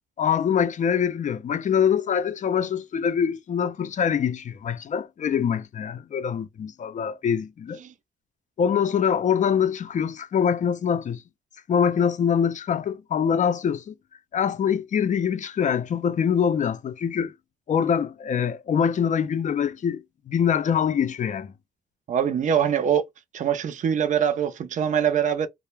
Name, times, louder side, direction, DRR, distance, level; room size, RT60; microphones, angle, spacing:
voice 1, 0.2-7.8 8.6-11.2 11.7-13.9 14.3-17.3 17.7-21.5, left 7 dB, 40° left, 0.4 m, -24 dB
voice 2, 22.1-23.0 23.3-25.5, right 8 dB, 40° right, 0.4 m, -23 dB
2.1 x 2.1 x 3.1 m
cardioid pair, 90°, 20 cm